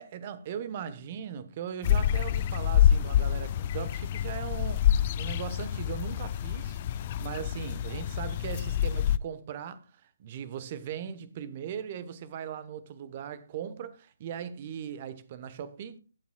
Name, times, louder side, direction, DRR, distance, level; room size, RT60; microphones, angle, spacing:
voice 1, 0.0-16.0, right 8 dB, 35° right, 1.0 m, -39 dB
sound 1, 1.8-9.2, left 10 dB, 30° left, 0.4 m, -27 dB
20.0 x 7.2 x 2.3 m
figure-of-eight pair, 145°, 0 cm